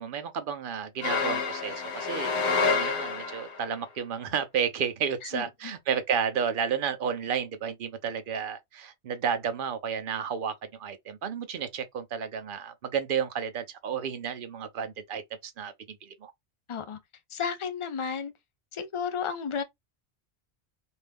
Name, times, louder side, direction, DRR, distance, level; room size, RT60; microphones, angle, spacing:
voice 1, 0.0-16.3, right 7 dB, 55° right, 0.7 m, -32 dB
sound 1, 1.0-3.6, left 4 dB, 80° left, 1.0 m, -28 dB
voice 2, 5.2-5.7 16.7-17.0 17.3-18.3 18.7-19.6, left 6 dB, 45° left, 0.4 m, -33 dB
2.7 x 2.3 x 3.3 m
omnidirectional pair, 1.1 m